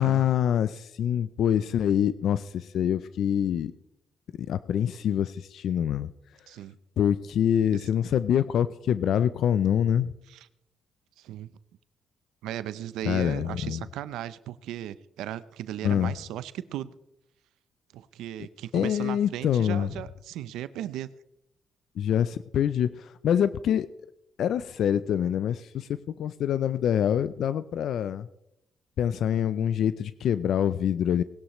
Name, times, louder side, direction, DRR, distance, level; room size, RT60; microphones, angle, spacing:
voice 1, 0.0-3.7 4.5-6.1 7.0-10.1 13.1-13.8 15.8-16.1 18.7-19.9 22.0-23.9 24.4-25.9 26.2-28.3 29.0-31.2, left 9 dB, 70° left, 15 dB, 0.4 m, -25 dB
voice 2, 11.2-11.5 12.4-16.9 17.9-21.1, right 12 dB, 90° right, 15 dB, 0.5 m, -36 dB
19.5 x 11.5 x 3.1 m, 0.86 s
cardioid pair, 90°, 0 cm